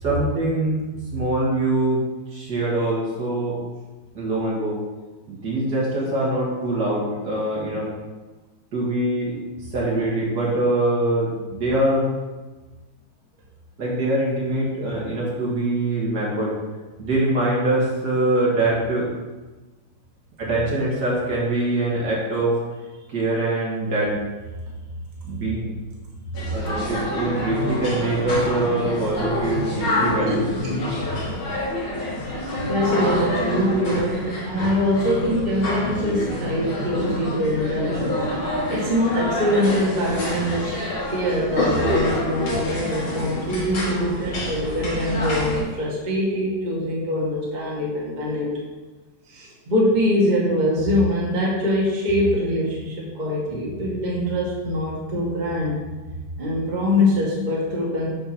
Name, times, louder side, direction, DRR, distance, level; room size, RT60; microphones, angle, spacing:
voice 1, 0.0-0.7 1.1-2.0 2.3-3.6 4.1-4.8 5.3-7.9 8.7-9.4 9.7-12.1 13.8-16.5 17.0-19.1 20.4-22.6 23.1-24.2 25.3-25.7 26.5-30.5, right 2 dB, 55° right, -5 dB, 2.2 m, -23 dB
sound 1, 26.3-45.6, left 1 dB, 75° left, 2.9 m, -27 dB
voice 2, 30.6-31.0 32.7-40.7 41.1-48.5 49.3-55.8 56.4-58.1, left 1 dB, 25° right, -5 dB, 1.5 m, -23 dB
8.7 x 3.7 x 5.9 m, 1.2 s
omnidirectional pair, 2.3 m